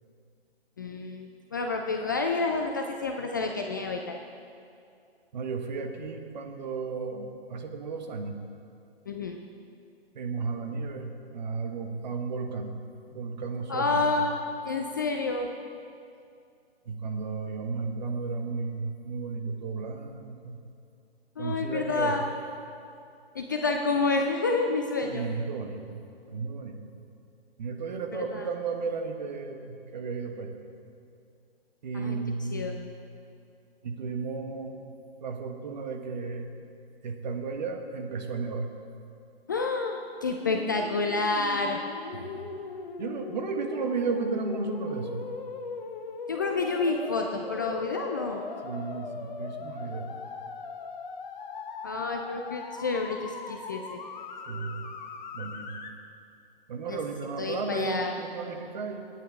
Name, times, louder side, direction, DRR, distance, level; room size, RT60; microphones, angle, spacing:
voice 1, 0.8-4.2 9.1-9.4 13.7-15.5 21.4-22.2 23.3-25.2 28.1-28.4 31.9-32.2 32.5-32.7 39.5-41.8 46.3-48.4 51.8-54.0 56.9-57.0 57.4-58.1, left 3 dB, 20° left, 3 dB, 0.4 m, -29 dB
voice 2, 5.3-8.4 10.1-12.8 13.1-14.2 16.8-20.6 21.4-22.2 25.0-25.9 26.3-26.8 27.6-30.6 31.8-32.7 33.8-36.5 37.0-38.7 42.1-42.5 43.0-45.2 48.6-50.1 54.5-54.9 55.3-55.7 56.7-59.0, right 4 dB, 45° right, 3 dB, 1.5 m, -34 dB
sound 1, 40.4-55.9, left 4 dB, 45° left, 1.2 m, -40 dB
26.0 x 9.3 x 3.7 m, 2.5 s
figure-of-eight pair, 135°, 32 cm